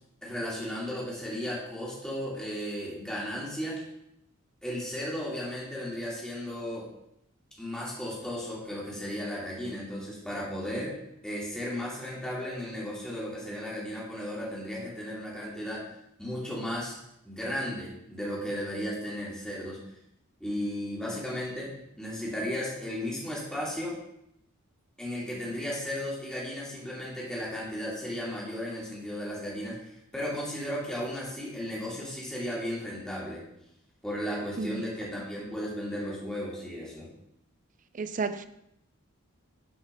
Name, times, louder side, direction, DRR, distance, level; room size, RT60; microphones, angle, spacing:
voice 1, 0.2-3.8 4.6-6.9 7.6-11.0 11.2-15.8 16.2-17.0 17.2-19.8 20.4-24.0 25.0-33.4 34.0-37.1, equal, 5° left, -6 dB, 2.3 m, -35 dB
voice 2, 37.9-38.5, right 4 dB, 40° right, 12 dB, 0.4 m, -32 dB
10.5 x 5.0 x 3.4 m, 0.79 s
head